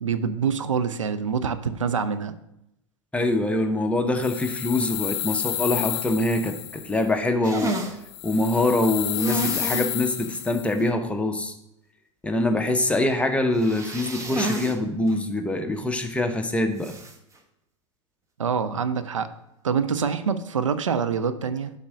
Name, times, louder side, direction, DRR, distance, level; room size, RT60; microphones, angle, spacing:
voice 1, 0.0-2.3 18.4-19.3 19.6-21.7, right 6 dB, 85° right, 11 dB, 0.5 m, -25 dB
voice 2, 3.1-7.8 8.2-11.5 12.2-16.9, left 2 dB, 10° left, 5 dB, 0.8 m, -24 dB
sound 1, 4.2-7.1 8.0-10.8, left 14 dB, 55° left, 0.5 m, -31 dB
sound 2, 7.4-8.0 9.2-9.9 10.3-10.4 10.8-10.9 13.6-14.8 15.1-15.2 16.8-17.1, right 2 dB, 20° right, 1.0 m, -30 dB
7.5 x 3.6 x 6.2 m, 0.82 s
hypercardioid pair, 95°, 16 cm